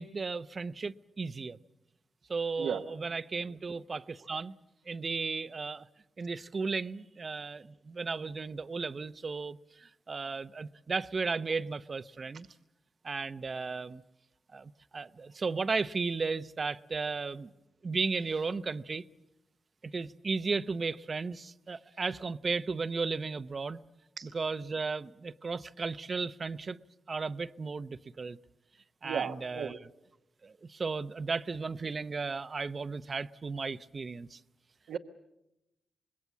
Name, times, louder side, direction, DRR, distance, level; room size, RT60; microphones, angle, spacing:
voice 1, 0.0-1.6 2.3-4.5 4.9-5.9 6.2-12.5 13.0-14.0 14.5-17.5 17.8-19.0 19.8-23.8 24.2-26.8 27.1-28.4 29.0-29.9 30.4-34.4, right 4 dB, 45° right, 0.8 m, -35 dB
voice 2, 29.0-29.8 34.9-35.0, right 7 dB, 85° right, 1.0 m, -34 dB
26.5 x 21.0 x 7.3 m
cardioid pair, 65°, 0 cm